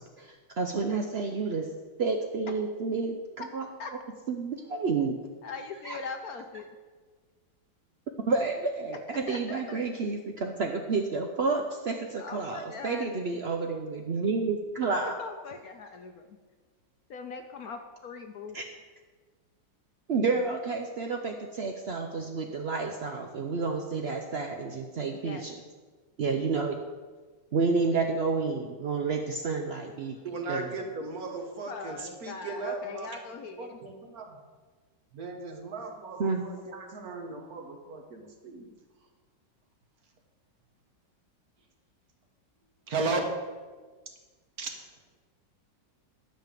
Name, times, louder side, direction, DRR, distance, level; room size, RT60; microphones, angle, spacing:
voice 1, 0.2-1.7 2.0-3.2 3.5-3.7 4.3-5.2 5.8-6.0 8.3-15.2 18.5-18.6 20.1-25.5 26.2-26.8 27.5-30.2 30.5-30.7 36.2-36.4, right 4 dB, 75° right, 3 dB, 0.5 m, -30 dB
voice 2, 5.4-6.7 9.3-9.8 12.2-13.4 15.0-16.4 17.1-18.6 25.1-25.4 31.7-33.8, left 4 dB, 65° left, 6 dB, 1.0 m, -41 dB
voice 3, 30.2-33.2 33.6-34.4 35.1-38.7 42.9-43.3 44.6-44.7, right 3 dB, 55° right, 3 dB, 1.6 m, -36 dB
11.5 x 5.4 x 7.5 m, 1.4 s
omnidirectional pair, 2.0 m